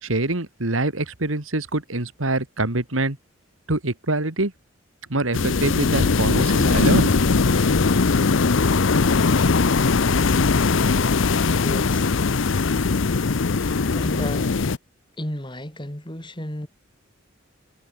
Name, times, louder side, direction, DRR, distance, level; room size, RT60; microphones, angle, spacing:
voice 1, 0.0-3.2 3.7-4.5 5.1-7.1 7.4-7.5, right 2 dB, 85° right, 2.6 m, -24 dB
sound 1, 5.3-14.8, left 4 dB, 70° left, 0.7 m, -20 dB
voice 2, 11.6-12.1 13.9-14.5 15.2-16.7, left 1 dB, 25° left, 3.9 m, -33 dB
head